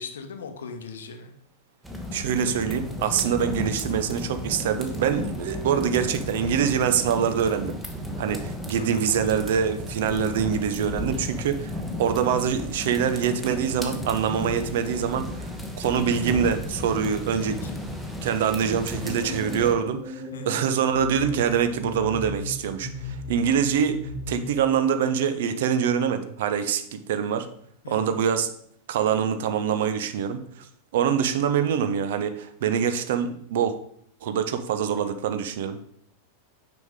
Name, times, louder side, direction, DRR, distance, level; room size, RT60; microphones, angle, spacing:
voice 1, 0.0-1.3 8.7-9.1 17.6-17.7 20.3-20.6 27.8-28.2, left 4 dB, 65° left, 7 dB, 0.7 m, -39 dB
sound 1, 1.8-19.7, left 1 dB, 5° right, 0.9 m, -34 dB
voice 2, 2.1-7.8 8.2-11.7 12.0-15.5 15.8-17.6 18.2-24.0 24.3-27.5 27.9-28.5 28.9-30.7 30.9-33.7 34.2-35.8, right 8 dB, 55° right, 9 dB, 0.5 m, -25 dB
sound 2, 19.0-24.7, left 2 dB, 20° left, 1.3 m, -36 dB
6.1 x 5.1 x 3.5 m, 0.68 s
figure-of-eight pair, 90°, 0 cm